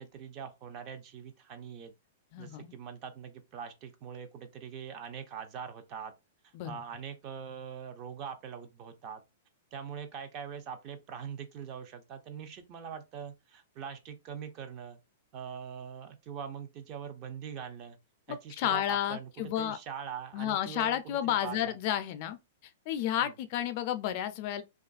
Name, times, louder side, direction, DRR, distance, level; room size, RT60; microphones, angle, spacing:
voice 1, 0.0-1.9 2.4-6.1 6.6-9.2 9.7-15.0 15.3-18.0 18.3-21.0 21.2-21.7 23.2-23.3, right 7 dB, 35° right, 0.5 m, -42 dB
voice 2, 2.3-2.7 6.5-6.8 18.3-19.8 20.3-22.4 22.6-24.6, left 11 dB, 45° left, 0.4 m, -32 dB
2.6 x 2.4 x 2.3 m
hypercardioid pair, 150°, 0 cm